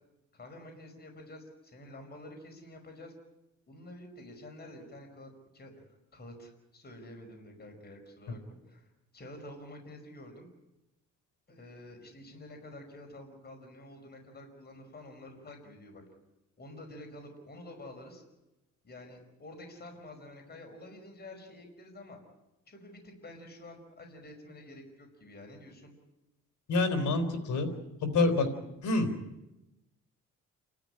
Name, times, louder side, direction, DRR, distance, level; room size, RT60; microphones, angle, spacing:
voice 1, 0.3-3.1 3.7-5.8 6.1-8.4 8.7-10.5 11.5-16.0 16.6-18.2 18.8-22.2 22.7-25.9, left 1 dB, 35° left, 3 dB, 5.3 m, -49 dB
voice 2, 26.7-27.7 28.0-28.5 28.8-29.1, left 3 dB, 70° left, 7 dB, 3.9 m, -27 dB
28.5 x 13.0 x 9.9 m, 0.96 s
cardioid pair, 90°, 30 cm